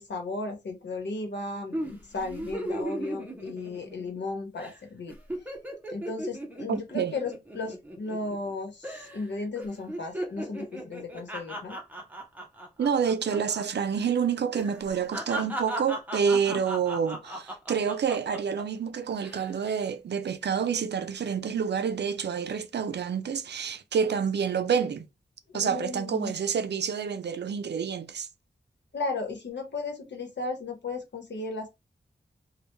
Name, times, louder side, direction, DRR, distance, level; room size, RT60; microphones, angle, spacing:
voice 1, 0.0-5.1 5.9-11.8 16.3-16.6 25.5-26.3 28.9-31.7, left 3 dB, 90° left, 1.0 m, -35 dB
sound 1, 1.7-4.3 4.6-4.8 5.1-8.5 8.8-9.3 9.6-13.6 13.9-14.1 14.5-18.6 19.1-19.5, right 1 dB, 10° right, 0.8 m, -37 dB
voice 2, 6.7-7.1 12.8-25.1 25.5-28.3, right 7 dB, 75° right, 0.4 m, -28 dB
3.3 x 2.3 x 3.0 m
wide cardioid pair, 110°, 18 cm